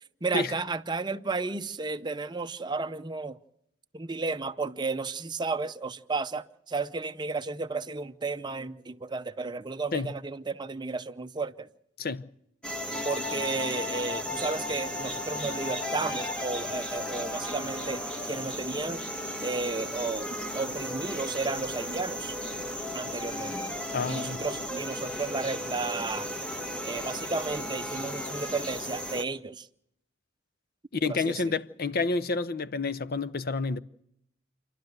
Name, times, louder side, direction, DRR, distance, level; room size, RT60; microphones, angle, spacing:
voice 1, 0.2-3.4 3.9-11.7 13.0-18.0 18.3-19.0 19.4-22.4 22.9-23.7 24.1-26.3 26.8-29.7 31.0-31.6, right 3 dB, 25° right, 0.7 m, -33 dB
sound 1, 12.6-29.2, left 1 dB, 5° left, 1.3 m, -35 dB
voice 2, 23.9-24.4 31.0-33.8, left 3 dB, 50° left, 0.7 m, -29 dB
28.5 x 11.5 x 8.0 m
head